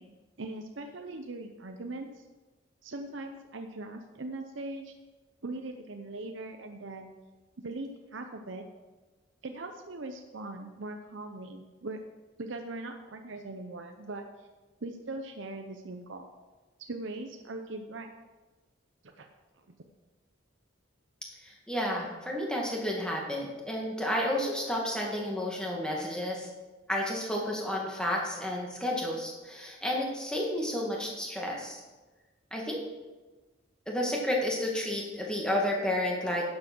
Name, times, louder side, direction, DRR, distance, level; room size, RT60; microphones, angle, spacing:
voice 1, 0.0-2.2 2.8-4.9 5.4-7.1 7.6-8.6 9.4-12.0 12.4-14.5 14.8-16.3 16.9-18.1 19.0-19.3, right 2 dB, 70° right, 4 dB, 0.8 m, -40 dB
voice 2, 21.4-26.5 26.9-31.8 32.5-32.8 33.9-36.4, left 1 dB, 5° left, -2 dB, 2.0 m, -31 dB
10.5 x 7.6 x 6.1 m, 1.2 s
head